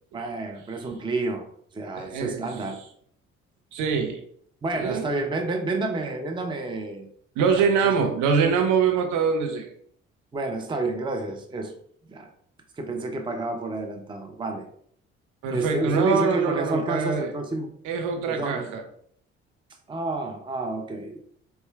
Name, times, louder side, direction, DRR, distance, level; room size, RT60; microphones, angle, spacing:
voice 1, 0.1-1.4 1.7-2.8 4.6-7.1 7.8-7.9 10.3-11.7 12.1-12.3 12.8-14.6 15.5-17.7 18.3-18.7 19.9-21.2, right 2 dB, 15° right, 5 dB, 0.5 m, -29 dB
voice 2, 2.0-2.5 3.7-4.2 4.7-5.1 7.4-9.7 15.4-17.3 17.8-18.8, right 6 dB, 60° right, 4 dB, 0.6 m, -24 dB
4.1 x 2.2 x 2.3 m, 0.63 s
figure-of-eight pair, 45°, 34 cm